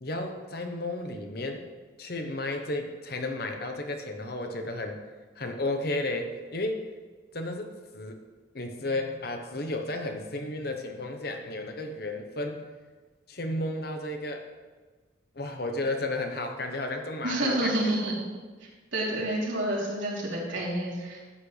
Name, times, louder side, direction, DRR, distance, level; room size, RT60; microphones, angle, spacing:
voice 1, 0.0-1.7 2.0-5.0 5.4-6.8 7.3-8.2 8.5-12.6 13.3-14.5 15.3-17.9, left 2 dB, 50° left, 5 dB, 1.0 m, -33 dB
voice 2, 17.2-18.1 18.6-21.2, right 1 dB, 85° right, -5 dB, 3.3 m, -29 dB
12.5 x 8.6 x 3.4 m, 1.4 s
head